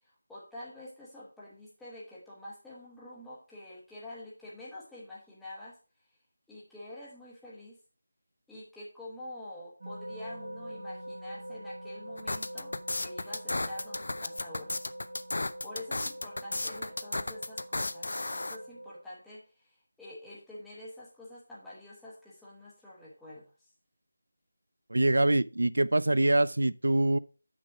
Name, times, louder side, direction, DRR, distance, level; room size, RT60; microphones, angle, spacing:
voice 1, 0.3-5.7 6.5-7.8 8.5-12.7 13.0-14.7 15.6-23.4, left 1 dB, ahead, 1.0 m, -47 dB
sound 1, 9.8-18.9, right 1 dB, 55° right, 2.2 m, -44 dB
sound 2, 12.2-18.6, left 2 dB, 60° left, 0.5 m, -34 dB
voice 2, 24.9-27.2, right 2 dB, 85° right, 0.5 m, -24 dB
6.1 x 6.0 x 4.6 m
figure-of-eight pair, 180°, 0 cm